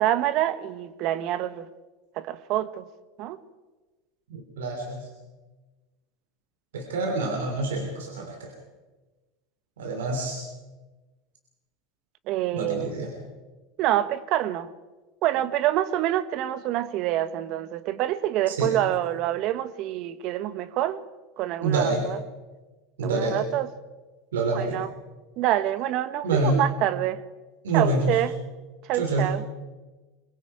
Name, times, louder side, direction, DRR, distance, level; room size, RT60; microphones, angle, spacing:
voice 1, 0.0-1.7 2.2-2.9 3.2-3.4 12.3-12.9 13.8-14.7 15.2-21.0 21.4-22.2 23.0-23.7 24.5-24.9 25.4-27.2 27.7-28.3 28.9-29.4, right 13 dB, 55° right, 1.2 m, -26 dB
voice 2, 4.3-5.1 6.7-8.5 9.8-10.4 12.5-13.1 18.5-18.7 21.6-22.0 23.0-23.4 24.3-24.8 26.2-26.6 27.6-28.2 28.9-29.3, right 3 dB, 85° right, 3.2 m, -26 dB
24.5 x 21.5 x 5.0 m
hypercardioid pair, 95°, 0 cm